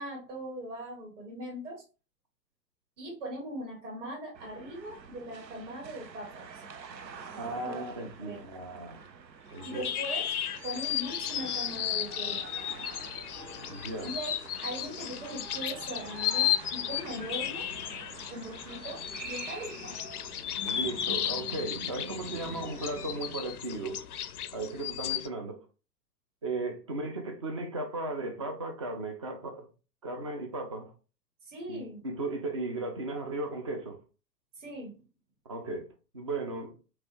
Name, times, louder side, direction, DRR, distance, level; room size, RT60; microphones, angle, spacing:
voice 1, 0.0-1.8 3.0-6.6 7.6-8.4 9.6-10.4 10.6-12.5 14.0-17.7 18.3-19.9 31.5-32.0 34.6-35.0, right 1 dB, 45° right, 2.3 m, -40 dB
sound 1, 4.3-23.4, right 5 dB, 80° right, 0.7 m, -47 dB
voice 2, 7.4-9.0 9.5-9.9 13.7-14.1 20.6-24.0 24.5-25.7 26.4-29.7 30.0-30.9 31.7-34.0 35.5-35.9 36.1-36.8, right 2 dB, 20° right, 0.4 m, -36 dB
sound 2, 9.6-25.3, left 10 dB, 65° left, 0.5 m, -34 dB
5.8 x 2.3 x 3.0 m
figure-of-eight pair, 110°, 50 cm